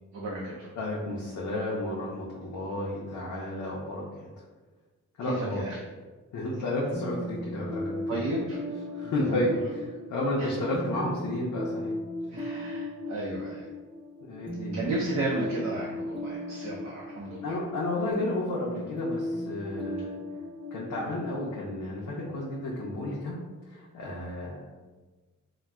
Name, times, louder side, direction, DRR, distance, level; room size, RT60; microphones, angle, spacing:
voice 1, 0.1-0.7 5.2-5.8 8.1-8.6 9.3-9.5 10.4-10.5 12.3-13.6 14.7-17.6, right 2 dB, 60° right, -5 dB, 0.6 m, -33 dB
voice 2, 0.8-4.3 5.2-5.6 6.3-8.2 8.9-11.9 14.2-14.8 17.4-20.2 20.7-23.4 23.7-24.6, left 1 dB, 80° left, -5 dB, 0.6 m, -32 dB
sound 1, 6.9-22.5, left 1 dB, 15° right, 0.7 m, -37 dB
3.9 x 2.1 x 2.2 m, 1.3 s
cardioid pair, 85°, 31 cm